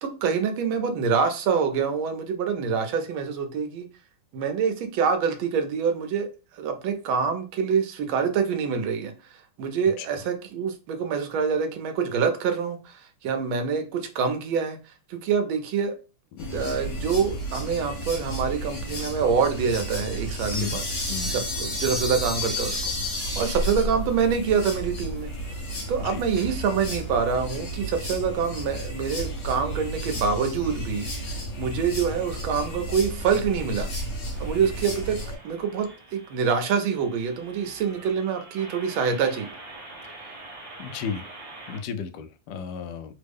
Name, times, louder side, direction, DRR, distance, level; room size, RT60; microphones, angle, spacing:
voice 1, 0.0-3.9 4.3-6.3 6.5-14.8 15.1-15.9 16.5-20.8 21.3-22.8 23.1-25.3 25.9-31.1 31.6-33.9 34.4-35.2 35.4-35.9 36.1-39.5, right 6 dB, 75° right, 1.4 m, -26 dB
sound 1, 16.4-35.3, equal, 60° left, 1.6 m, -32 dB
sound 2, 34.3-41.8, right 2 dB, 35° right, 1.0 m, -45 dB
voice 2, 40.8-41.3 41.7-43.2, left 7 dB, 75° left, 1.0 m, -33 dB
3.7 x 2.1 x 3.4 m
omnidirectional pair, 2.3 m